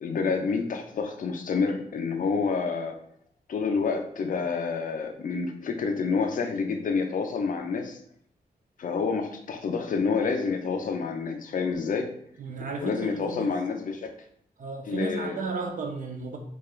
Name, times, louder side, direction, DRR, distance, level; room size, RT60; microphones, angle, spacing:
voice 1, 0.0-3.0 3.5-8.0 8.8-12.1 12.8-14.1 14.9-15.4, left 5 dB, 55° left, 5 dB, 0.4 m, -28 dB
voice 2, 12.4-13.5 14.6-16.4, right 4 dB, 50° right, 2 dB, 0.4 m, -34 dB
3.0 x 2.3 x 2.3 m, 0.67 s
wide cardioid pair, 110°, 17 cm